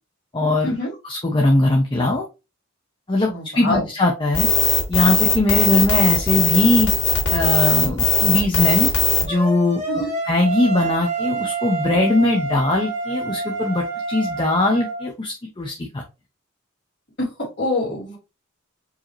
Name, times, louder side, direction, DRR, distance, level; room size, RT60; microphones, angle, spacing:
voice 1, 0.3-0.7 1.0-2.3 3.1-4.5 4.9-6.9 7.3-8.9 9.2-16.0, left 2 dB, 25° left, 1 dB, 0.7 m, -20 dB
voice 2, 3.2-3.8 9.9-10.1 17.2-17.3 17.6-18.2, left 2 dB, 55° left, -2 dB, 2.5 m, -25 dB
sound 1, 4.3-9.2, left 4 dB, 80° left, 2.2 m, -19 dB
sound 2, 9.3-15.0, right 4 dB, 35° right, 1.3 m, -28 dB
4.7 x 2.8 x 3.0 m, 0.27 s
head